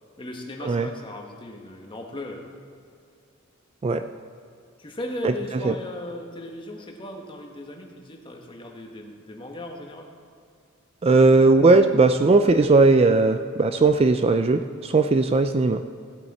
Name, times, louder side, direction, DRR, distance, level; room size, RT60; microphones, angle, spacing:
voice 1, 0.2-2.4 4.8-10.1, left 1 dB, 25° left, 1 dB, 1.4 m, -37 dB
voice 2, 11.0-15.8, right 3 dB, 30° right, 9 dB, 0.3 m, -18 dB
16.5 x 8.3 x 4.2 m, 2.3 s
head